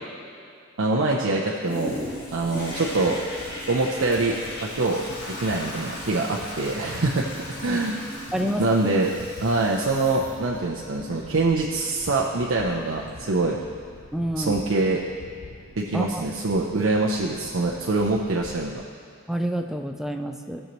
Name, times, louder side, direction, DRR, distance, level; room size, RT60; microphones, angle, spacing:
voice 1, 0.8-2.0 2.3-3.2 3.7-4.3 4.7-5.0 5.3-7.3 7.6-8.0 8.6-9.1 9.4-13.6 14.4-15.0 15.8-18.8, right 3 dB, 65° right, -2 dB, 0.7 m, -24 dB
Toilet flush, 1.6-14.1 14.6-14.7, left 1 dB, 45° left, 2.4 m, -38 dB
sound 1, 1.8-18.7, left 1 dB, 60° left, 1.1 m, -46 dB
voice 2, 8.3-8.7 14.1-14.6 15.9-16.3 19.3-20.6, right 1 dB, ahead, 4 dB, 0.4 m, -28 dB
16.5 x 6.5 x 3.1 m, 2.4 s
head